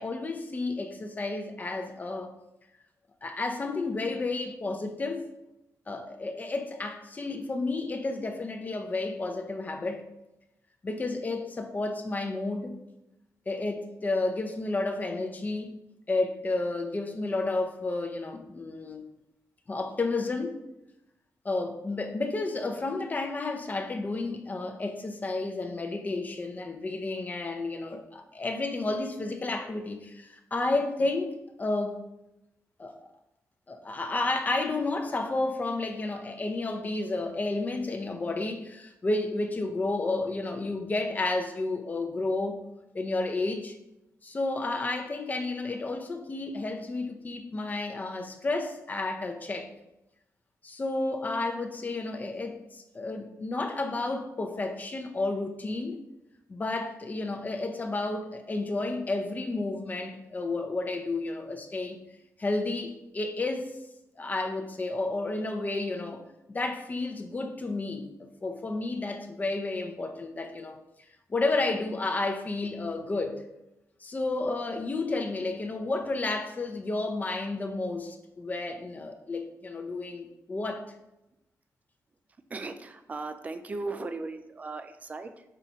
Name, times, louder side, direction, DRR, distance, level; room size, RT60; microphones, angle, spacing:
voice 1, 0.0-2.3 3.2-5.3 5.9-10.0 10.8-12.8 13.5-15.7 16.1-19.1 19.7-20.6 21.4-32.0 32.8-32.9 33.7-42.6 42.9-43.8 44.2-49.7 50.6-56.0 56.5-62.0 62.4-63.7 64.2-66.2 66.5-68.1 68.4-70.8 71.3-73.4 74.0-80.9, left 2 dB, 30° left, 0.6 m, -31 dB
voice 2, 82.5-85.4, right 3 dB, 25° right, 0.4 m, -37 dB
5.6 x 4.8 x 4.0 m
wide cardioid pair, 150°, 6 cm